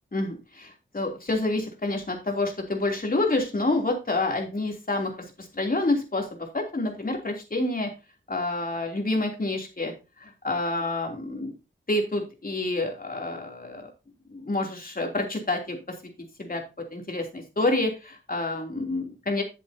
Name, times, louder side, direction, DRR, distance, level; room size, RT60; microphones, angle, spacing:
voice 1, 0.1-7.9 8.3-9.9 10.2-11.5 11.9-13.9 14.3-16.0 16.4-19.4, left 2 dB, 45° left, 2 dB, 3.1 m, -28 dB
11.5 x 7.6 x 2.8 m, 0.27 s
wide cardioid pair, 70°, 21 cm